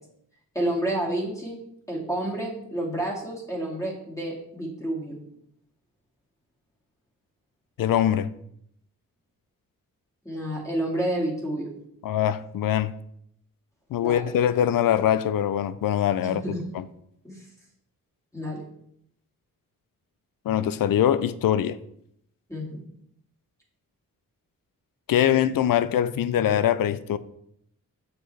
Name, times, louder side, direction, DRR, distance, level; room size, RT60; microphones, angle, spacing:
voice 1, 0.5-1.6 1.9-5.2 10.2-11.7 14.0-14.3 16.2-16.6 17.2-17.5 18.3-18.6 22.5-22.8, right 1 dB, 10° left, 2.3 m, -30 dB
voice 2, 7.8-8.3 12.0-12.9 13.9-16.4 16.7-16.8 20.5-21.8 25.1-27.2, left 10 dB, 75° left, 0.5 m, -23 dB
6.9 x 6.4 x 3.3 m
wide cardioid pair, 100°, 34 cm